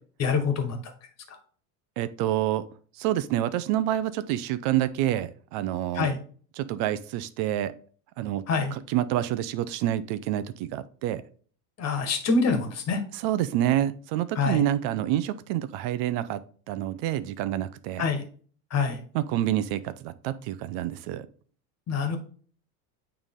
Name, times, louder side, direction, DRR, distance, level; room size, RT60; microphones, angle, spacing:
voice 1, 0.2-0.8 5.9-6.2 8.5-8.7 11.8-13.0 14.3-14.6 18.0-18.2 18.7-19.0 21.9-22.2, left 4 dB, 35° left, 7 dB, 1.6 m, -25 dB
voice 2, 2.0-2.6 3.0-6.1 6.6-7.7 8.2-8.4 8.7-11.2 13.1-16.4 16.7-18.1 19.1-21.3, right 12 dB, 60° right, 14 dB, 0.7 m, -27 dB
8.8 x 3.5 x 3.7 m, 0.43 s
supercardioid pair, 130°, 46 cm